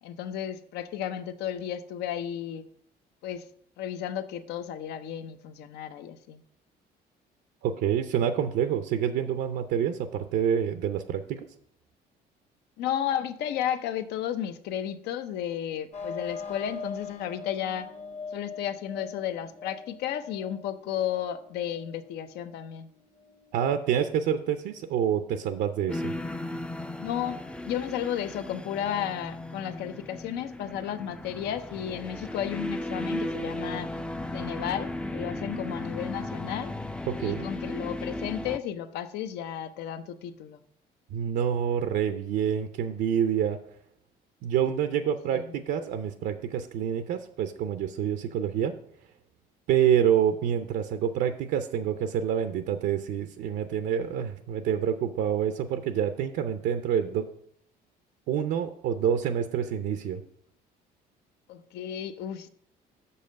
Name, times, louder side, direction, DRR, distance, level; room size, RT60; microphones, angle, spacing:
voice 1, 0.0-2.6 3.2-3.5 3.8-6.4 12.8-17.9 18.3-22.9 27.0-33.9 34.3-36.7 37.2-40.6 45.3-45.6 61.5-62.5, left 10 dB, 80° left, 11 dB, 0.6 m, -33 dB
voice 2, 7.6-11.5 23.5-26.1 37.1-37.5 41.1-43.6 44.4-48.7 49.7-57.2 58.3-60.2, right 9 dB, 80° right, 8 dB, 0.5 m, -27 dB
sound 1, 15.9-31.4, left 5 dB, 45° left, 1.1 m, -45 dB
sound 2, 25.9-38.6, left 1 dB, 5° left, 0.3 m, -35 dB
6.5 x 5.5 x 5.1 m, 0.66 s
cardioid pair, 110°, 17 cm